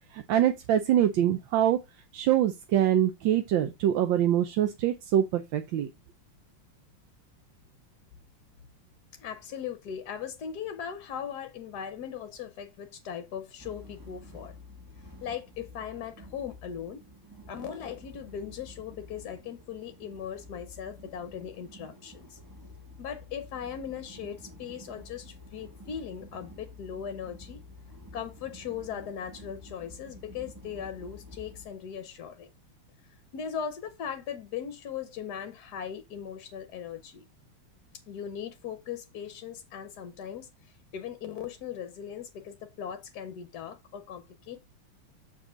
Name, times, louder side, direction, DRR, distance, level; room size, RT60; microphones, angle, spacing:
voice 1, 0.1-1.8 2.1-5.9, right 11 dB, 70° right, 1.3 m, -24 dB
voice 2, 9.2-14.5 15.2-17.0 17.5-22.4 23.0-27.6 28.1-32.5 33.3-37.2 38.1-44.6, left 8 dB, 60° left, 1.2 m, -39 dB
sound 1, 13.6-31.7, left 2 dB, 25° right, 0.5 m, -49 dB
7.2 x 6.2 x 3.7 m
omnidirectional pair, 2.4 m